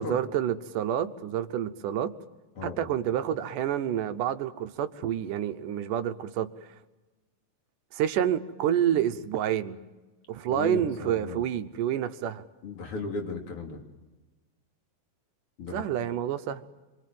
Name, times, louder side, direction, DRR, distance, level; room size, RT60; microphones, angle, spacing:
voice 1, 0.0-2.1 2.6-6.7 7.9-9.8 10.3-12.4 15.7-16.6, right 10 dB, 75° right, 2.4 m, -28 dB
voice 2, 2.6-2.9 10.5-11.4 12.6-13.8 15.6-15.8, left 4 dB, 40° left, 3.5 m, -35 dB
26.5 x 23.5 x 7.7 m
omnidirectional pair, 4.0 m